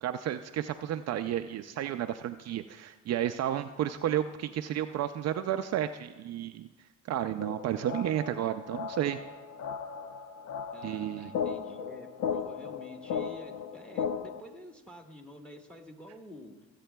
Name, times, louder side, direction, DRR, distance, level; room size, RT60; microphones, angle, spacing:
voice 1, 0.0-6.7 7.1-9.2 10.8-11.3, right 11 dB, 55° right, 8 dB, 0.4 m, -32 dB
sound 1, 7.4-14.4, left 7 dB, 65° left, 0.7 m, -36 dB
voice 2, 10.7-16.7, equal, 5° left, 2 dB, 1.4 m, -49 dB
24.0 x 8.2 x 2.3 m, 1.3 s
cardioid pair, 100°, 32 cm